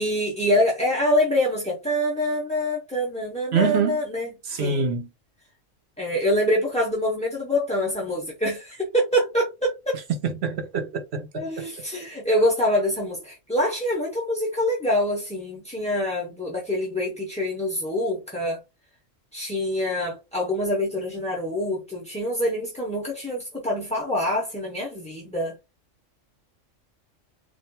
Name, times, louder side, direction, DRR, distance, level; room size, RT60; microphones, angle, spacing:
voice 1, 0.0-4.9 6.0-10.0 11.3-18.6 19.3-25.5, left 1 dB, 10° left, 0.5 m, -25 dB
voice 2, 3.5-4.0 4.5-5.1 10.2-11.4, right 5 dB, 65° right, 0.8 m, -25 dB
4.1 x 2.5 x 2.2 m
omnidirectional pair, 1.3 m